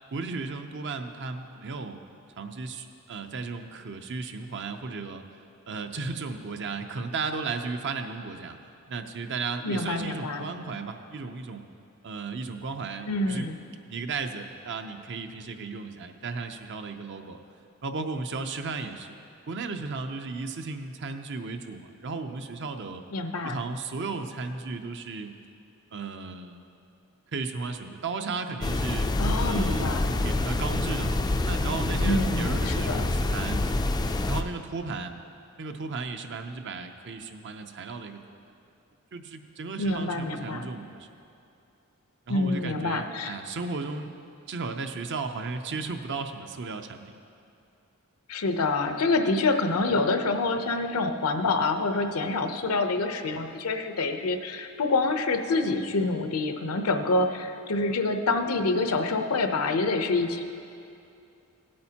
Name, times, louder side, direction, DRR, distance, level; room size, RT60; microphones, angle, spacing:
voice 1, 0.1-2.0 2.4-5.3 5.7-8.6 8.9-11.7 12.0-13.5 13.9-17.4 17.8-19.2 19.5-23.0 23.4-25.3 25.9-26.6 27.3-29.1 29.4-33.8 34.3-35.2 35.6-38.2 39.1-41.1 42.3-44.1 44.5-47.2, right 4 dB, 55° right, 6 dB, 0.6 m, -35 dB
voice 2, 9.6-10.4 13.1-13.6 23.1-23.6 29.2-30.1 32.0-33.1 39.8-40.7 42.3-43.3 48.3-60.4, left 3 dB, 80° left, 6 dB, 0.7 m, -27 dB
sound 1, 28.6-34.4, left 2 dB, 20° left, 0.3 m, -26 dB
16.5 x 8.6 x 2.9 m, 2.6 s
head